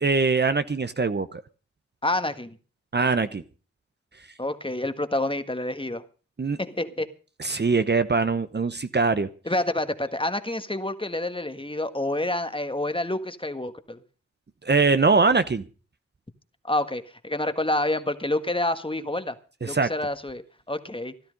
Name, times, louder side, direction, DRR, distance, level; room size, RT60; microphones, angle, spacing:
voice 1, 0.0-1.4 2.9-3.4 6.4-6.6 7.4-9.3 14.7-15.6 19.6-19.9, right 4 dB, 35° right, 0.9 m, -22 dB
voice 2, 2.0-2.6 4.4-6.0 6.6-7.1 9.5-14.0 16.6-19.4 19.7-20.4 20.7-21.1, left 1 dB, 15° left, 1.6 m, -28 dB
14.5 x 12.5 x 5.2 m
supercardioid pair, 40°, 31 cm